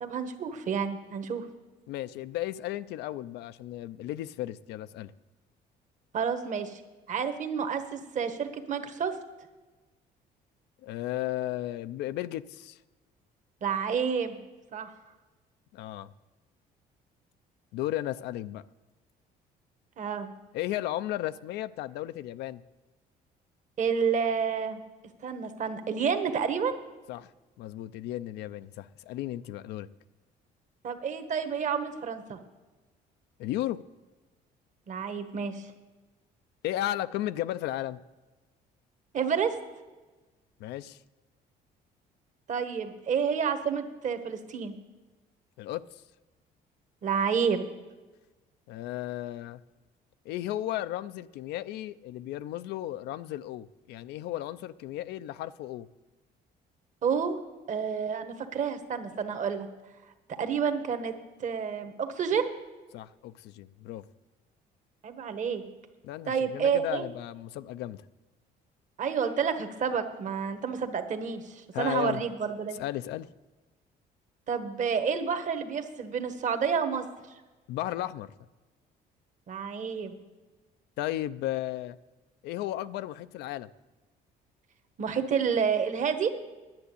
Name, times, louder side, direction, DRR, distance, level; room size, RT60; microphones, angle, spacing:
voice 1, 0.0-1.5 6.1-6.8 7.1-9.1 13.6-14.4 14.7-14.9 20.0-20.3 23.8-24.8 25.2-26.8 30.8-32.4 34.9-35.7 39.1-39.5 42.5-44.7 47.0-47.6 57.0-57.4 57.7-59.7 60.4-61.1 61.4-62.5 65.0-65.6 66.3-67.0 69.0-72.8 74.5-77.0 79.5-80.1 85.0-86.3, right 6 dB, 45° right, 8 dB, 1.2 m, -29 dB
voice 2, 1.9-5.1 10.8-12.8 15.7-16.1 17.7-18.6 20.5-22.6 27.1-27.3 27.6-29.9 33.4-33.8 36.6-38.0 40.6-41.0 45.6-46.0 48.7-49.6 50.3-55.9 62.9-64.0 66.0-68.0 71.7-72.2 72.7-73.3 77.7-78.3 81.0-82.0 82.4-83.7, left 14 dB, 80° left, 13 dB, 0.4 m, -34 dB
10.5 x 7.0 x 8.3 m, 1.2 s
cardioid pair, 110°, 17 cm